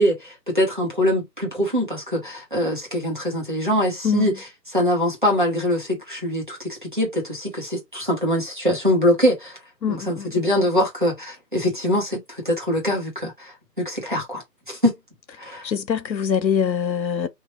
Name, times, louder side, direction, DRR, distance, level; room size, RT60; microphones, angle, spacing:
voice 1, 0.0-9.6 9.9-14.9 15.4-15.7, equal, 30° right, 0.9 m, -23 dB
voice 2, 9.8-10.3 15.6-17.3, left 7 dB, 90° left, 0.8 m, -23 dB
3.1 x 2.4 x 2.8 m
figure-of-eight pair, 170°, 50 cm